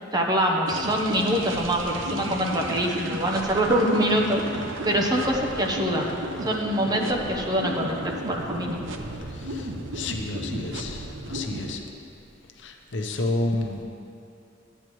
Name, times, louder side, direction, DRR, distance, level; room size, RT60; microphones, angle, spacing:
voice 1, 0.1-6.1 6.4-8.8, equal, 20° right, 0 dB, 0.9 m, -24 dB
sound 1, 0.7-11.7, right 1 dB, 80° right, 0.7 m, -34 dB
voice 2, 9.3-11.8 12.6-13.8, left 2 dB, 70° left, 3 dB, 0.8 m, -30 dB
13.0 x 9.2 x 3.1 m, 2.6 s
head